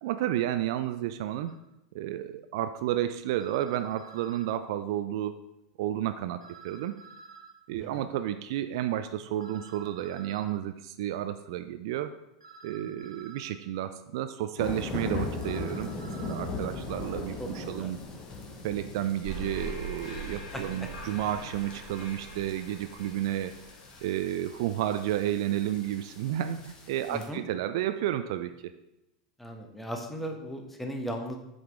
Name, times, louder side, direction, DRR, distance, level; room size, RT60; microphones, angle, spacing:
voice 1, 0.0-1.5 1.9-5.4 5.8-6.9 7.7-12.1 12.6-18.0 18.6-23.5 24.0-28.7, right 12 dB, 60° right, 10 dB, 0.4 m, -31 dB
sound 1, 1.5-1.6 3.4-4.5 6.4-7.5 9.4-10.5 12.4-13.5 15.4-16.4, right 4 dB, 85° right, 0.8 m, -50 dB
sound 2, 14.6-27.3, left 3 dB, 35° left, 1.3 m, -40 dB
voice 2, 17.4-17.9 20.5-20.9 27.1-27.4 29.4-31.4, equal, 5° left, 3 dB, 1.1 m, -37 dB
sound 3, 19.2-24.7, right 1 dB, 65° left, 2.8 m, -42 dB
7.8 x 5.0 x 3.6 m, 0.90 s
figure-of-eight pair, 85°, 3 cm